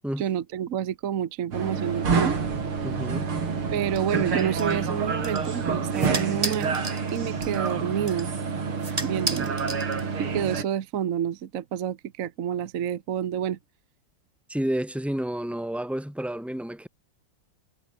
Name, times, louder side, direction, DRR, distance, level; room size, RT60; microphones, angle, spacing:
voice 1, 0.2-2.4 3.7-6.8 7.1-8.3 9.0-9.5 10.2-13.6, right 9 dB, 50° right, 1.1 m, -29 dB
sound 1, 1.5-10.6, right 5 dB, 85° right, 4.1 m, -28 dB
voice 2, 2.8-3.3 14.5-16.9, right 1 dB, ahead, 5.7 m, -30 dB
sound 2, 3.9-10.4, right 2 dB, 15° right, 2.5 m, -36 dB
omnidirectional pair, 2.3 m